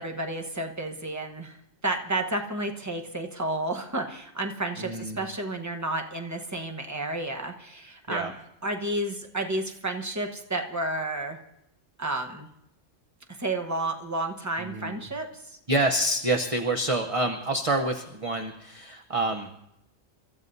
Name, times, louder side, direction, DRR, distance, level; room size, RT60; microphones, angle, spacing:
voice 1, 0.0-1.6 1.8-8.3 8.6-11.4 12.0-12.5 13.3-15.6, right 2 dB, 15° right, 4 dB, 1.1 m, -31 dB
voice 2, 4.8-5.3 8.1-8.3 14.6-15.0 15.7-19.5, right 2 dB, 30° right, 4 dB, 0.8 m, -27 dB
29.5 x 14.5 x 2.7 m, 0.81 s
omnidirectional pair, 1.3 m